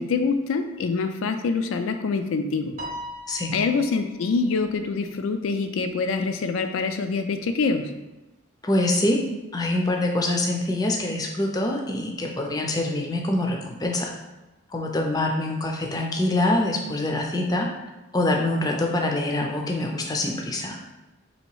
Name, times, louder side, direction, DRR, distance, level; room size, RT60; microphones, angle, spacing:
voice 1, 0.0-2.7 3.5-7.9, left 4 dB, 85° left, 7 dB, 0.4 m, -25 dB
Piano, 2.8-4.3, equal, 35° right, 0.5 m, -38 dB
voice 2, 8.6-9.2 9.5-14.1 14.7-17.7 18.1-20.8, left 1 dB, 20° left, 1 dB, 0.4 m, -25 dB
3.0 x 2.8 x 4.5 m, 1.1 s
head